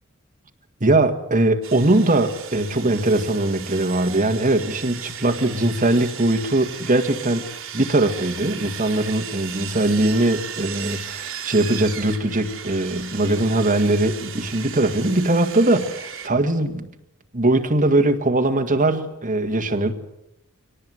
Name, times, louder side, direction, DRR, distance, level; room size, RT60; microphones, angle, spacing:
voice 1, 0.8-7.4 7.7-16.9 17.3-19.9, right 2 dB, 35° right, 4 dB, 1.8 m, -21 dB
Sawing, 1.6-16.3, right 8 dB, 65° right, 2.7 m, -36 dB
23.5 x 18.5 x 7.8 m, 0.85 s
head